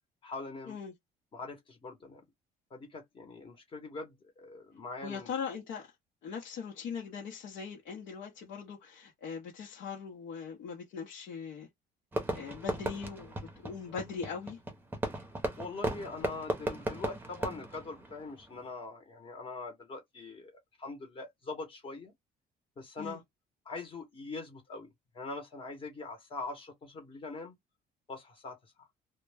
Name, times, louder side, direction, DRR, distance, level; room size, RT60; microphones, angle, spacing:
voice 1, 0.2-0.8 1.3-2.2 2.7-5.3 15.6-20.5 20.8-22.1 22.8-23.2 23.6-27.6 28.1-28.6, left 3 dB, 30° left, 0.9 m, -42 dB
voice 2, 5.0-5.9 6.2-11.7 12.3-13.3 13.6-14.6 23.0-23.2, left 6 dB, 75° left, 0.8 m, -40 dB
Fireworks, 12.1-18.6, right 1 dB, 10° right, 0.6 m, -37 dB
2.2 x 2.1 x 3.2 m
cardioid pair, 150°, 17 cm